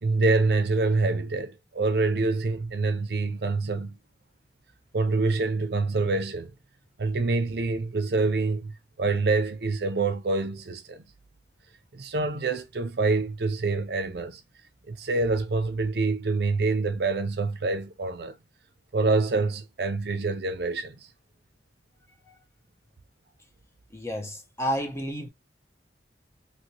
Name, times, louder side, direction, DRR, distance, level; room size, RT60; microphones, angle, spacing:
voice 1, 0.0-4.0 4.9-6.5 7.0-11.0 11.9-14.4 14.9-18.4 18.9-21.0, right 3 dB, 65° right, 0.5 m, -26 dB
voice 2, 23.9-25.3, equal, 15° left, 0.6 m, -31 dB
2.9 x 2.9 x 2.8 m
head